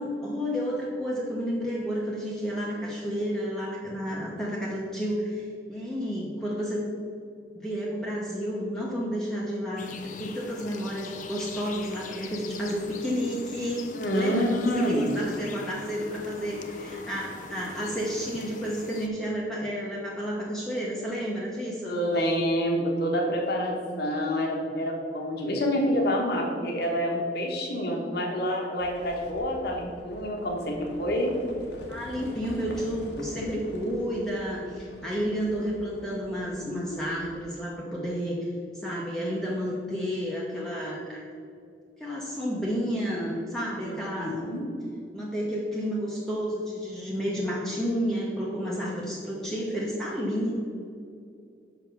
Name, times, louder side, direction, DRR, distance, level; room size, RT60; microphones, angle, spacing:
voice 1, 0.0-6.8 7.6-22.1 31.9-38.5 38.8-41.2 42.0-44.5 45.1-50.5, equal, 5° left, -5 dB, 0.9 m, -31 dB
sound 1, 9.8-19.1, left 4 dB, 50° left, 0.5 m, -42 dB
voice 2, 13.9-15.1 21.8-31.3 43.8-44.7 48.6-48.8, equal, 65° left, 0 dB, 1.2 m, -27 dB
Livestock farm animals working animals, 28.8-37.4, left 1 dB, 85° left, 1.3 m, -45 dB
5.8 x 5.4 x 5.9 m, 2.4 s
head